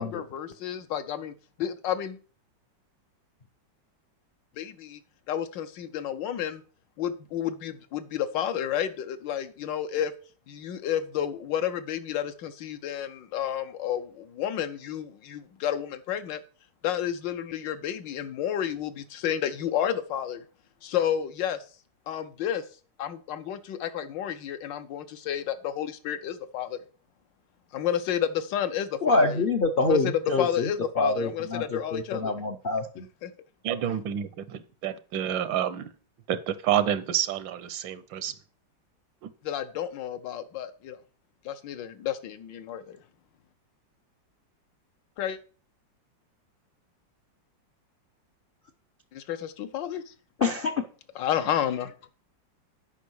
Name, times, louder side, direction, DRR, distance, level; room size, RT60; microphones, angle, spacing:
voice 1, 0.0-1.3 1.6-2.2 4.6-5.0 5.3-6.6 7.0-10.1 10.5-16.4 16.8-20.4 20.8-21.6 22.1-22.6 23.0-26.8 27.7-29.4 29.8-32.3 33.2-33.3 39.4-41.0 41.4-43.0 45.2-45.4 49.1-50.1 51.2-51.9, left 10 dB, 80° left, 1.5 m, -31 dB
voice 2, 29.0-33.1 50.4-50.8, left 3 dB, 60° left, 0.5 m, -26 dB
voice 3, 33.6-35.9 36.3-38.3 39.2-39.3, right 10 dB, 85° right, 1.5 m, -29 dB
8.3 x 5.4 x 6.2 m
omnidirectional pair, 2.0 m